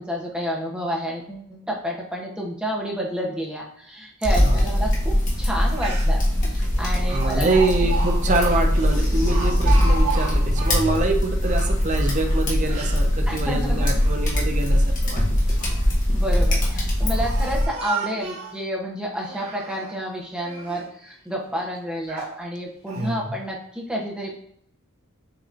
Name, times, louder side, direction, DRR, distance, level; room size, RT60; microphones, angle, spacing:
voice 1, 0.0-6.2 6.5-7.6 13.3-14.0 15.7-15.8 16.1-24.4, equal, 5° right, -2 dB, 0.9 m, -30 dB
sound 1, 4.2-17.7, equal, 35° left, 1.2 m, -21 dB
Speech, 5.8-6.3 7.1-10.9 11.4-13.0 13.6-14.4 15.3-15.9 16.6-18.6 19.2-20.0 20.4-20.9 21.4-21.5 22.1-22.4 22.9-23.1, right 5 dB, 90° right, 1.6 m, -34 dB
voice 2, 7.1-15.2 23.0-23.3, right 2 dB, 35° right, 3 dB, 0.7 m, -25 dB
6.7 x 3.0 x 2.5 m, 0.71 s
head